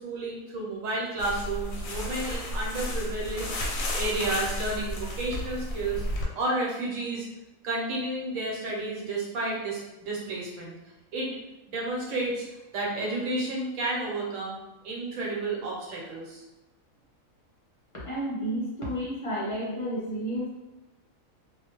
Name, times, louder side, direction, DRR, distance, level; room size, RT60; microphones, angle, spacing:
voice 1, 0.0-3.5 3.9-6.0 6.3-7.3 7.6-10.7 11.1-11.3 11.7-12.4 12.7-14.5 14.8-16.4, right 2 dB, 75° right, -3 dB, 1.1 m, -31 dB
sound 1, 1.2-6.2, left 1 dB, 90° left, 1.0 m, -32 dB
voice 2, 18.0-20.5, equal, 35° left, -7 dB, 0.6 m, -31 dB
2.4 x 2.1 x 3.0 m, 0.99 s
omnidirectional pair, 1.4 m